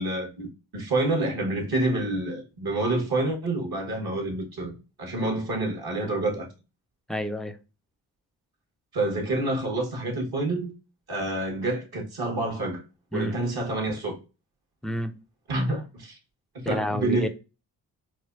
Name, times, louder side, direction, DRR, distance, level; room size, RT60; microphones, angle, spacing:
voice 1, 0.0-6.5 8.9-10.7 11.1-12.8 13.1-14.2 15.5-16.2 16.6-17.3, right 2 dB, 60° right, 1.4 m, -28 dB
voice 2, 7.1-7.6 13.1-13.4 14.8-15.1 16.6-17.3, left 1 dB, ahead, 0.3 m, -29 dB
4.1 x 2.2 x 2.4 m
supercardioid pair, 45°, 42 cm